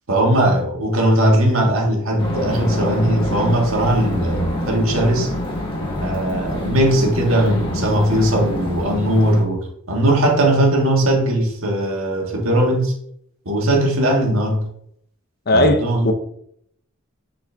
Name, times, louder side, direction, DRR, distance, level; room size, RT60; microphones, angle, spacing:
voice 1, 0.1-5.3 6.0-12.9 13.4-14.6 15.5-16.1, right 1 dB, 70° right, 0 dB, 1.6 m, -19 dB
sound 1, 2.2-9.4, left 1 dB, 25° left, 1.4 m, -26 dB
voice 2, 15.5-16.1, left 1 dB, 50° left, 7 dB, 0.7 m, -17 dB
7.0 x 4.2 x 3.4 m, 0.70 s
head